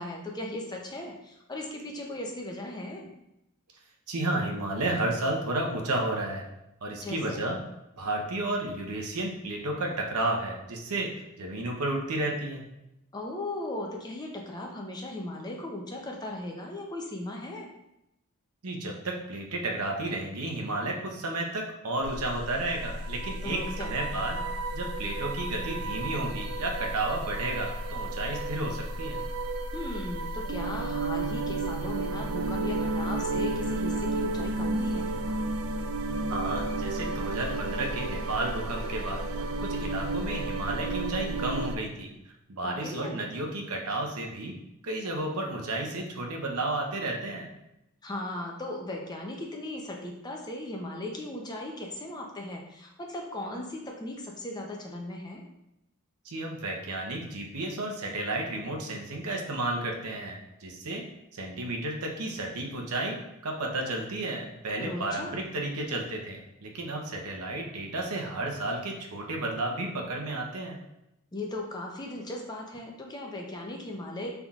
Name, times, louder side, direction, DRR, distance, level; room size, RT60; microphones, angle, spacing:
voice 1, 0.0-3.1 7.0-7.4 13.1-17.7 23.4-23.9 29.7-35.4 42.6-43.2 48.0-55.4 64.8-65.3 71.3-74.3, left 1 dB, 20° left, 0 dB, 0.5 m, -37 dB
voice 2, 4.1-6.5 6.8-7.6 8.0-11.1 11.4-12.6 18.6-24.4 24.7-29.2 36.3-42.1 42.5-44.5 44.8-47.5 56.2-61.0 61.3-63.2 63.4-70.8, right 2 dB, 85° right, 1 dB, 0.8 m, -32 dB
sound 1, 22.0-41.8, right 2 dB, 70° right, 0.4 m, -32 dB
5.5 x 3.5 x 2.4 m, 0.87 s
head